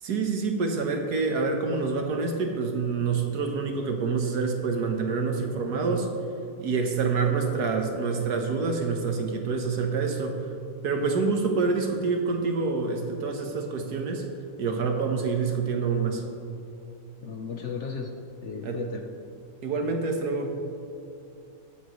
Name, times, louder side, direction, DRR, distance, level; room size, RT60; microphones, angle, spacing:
voice 1, 0.0-6.1 6.6-10.4 10.8-14.3 14.6-16.2 18.6-18.8 19.6-20.6, right 4 dB, 70° right, 3 dB, 1.6 m, -27 dB
voice 2, 17.2-18.1 18.4-19.0, left 5 dB, 55° left, 3 dB, 0.9 m, -35 dB
21.0 x 7.6 x 3.1 m, 2.6 s
omnidirectional pair, 1.8 m